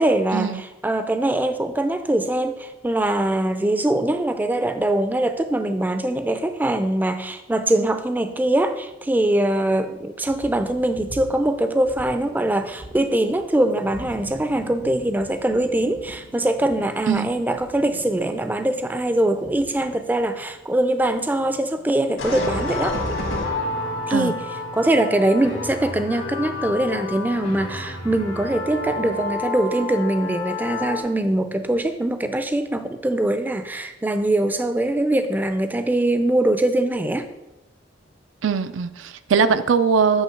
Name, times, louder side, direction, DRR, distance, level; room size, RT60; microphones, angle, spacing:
voice 1, 0.0-23.0 24.1-24.4 24.7-37.3, right 1 dB, 10° right, 9 dB, 0.4 m, -22 dB
Thunder, 10.2-21.8, right 1 dB, 65° right, 0.9 m, -44 dB
sound 1, 22.2-31.0, left 2 dB, 80° left, 1.7 m, -29 dB
voice 2, 38.4-40.2, right 6 dB, 85° right, 11 dB, 0.4 m, -21 dB
8.8 x 3.0 x 5.7 m, 0.96 s
head